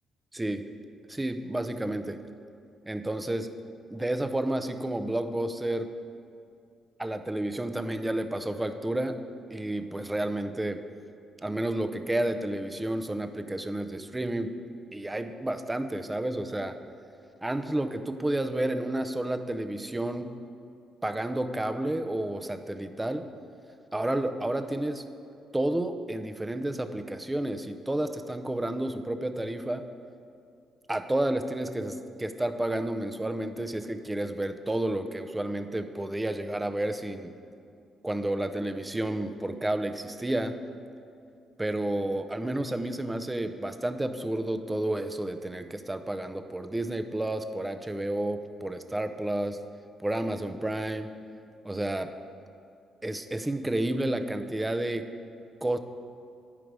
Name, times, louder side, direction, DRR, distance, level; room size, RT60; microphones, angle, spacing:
voice 1, 0.3-0.7 1.1-2.2 2.9-3.5 3.9-5.9 7.0-9.2 9.5-10.8 11.4-14.5 14.9-16.8 17.4-20.4 21.0-23.3 23.9-25.1 25.5-29.9 30.9-37.3 38.0-40.6 41.6-49.6 50.0-51.1 51.6-52.1 53.0-55.1 55.6-55.8, right 1 dB, 15° right, 8 dB, 0.5 m, -31 dB
9.7 x 5.1 x 4.6 m, 2.5 s
cardioid pair, 90°, 0 cm